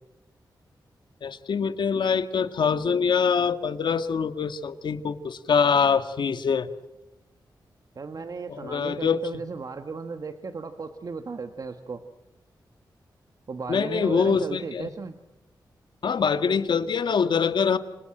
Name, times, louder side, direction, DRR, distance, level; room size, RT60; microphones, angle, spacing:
voice 1, 1.2-6.7 8.5-9.2 13.7-14.9 16.0-17.8, left 6 dB, 75° left, 10 dB, 1.8 m, -24 dB
voice 2, 7.9-12.0 13.5-15.2, right 4 dB, 50° right, 7 dB, 1.6 m, -35 dB
28.5 x 26.0 x 7.9 m, 0.94 s
wide cardioid pair, 115°, 8 cm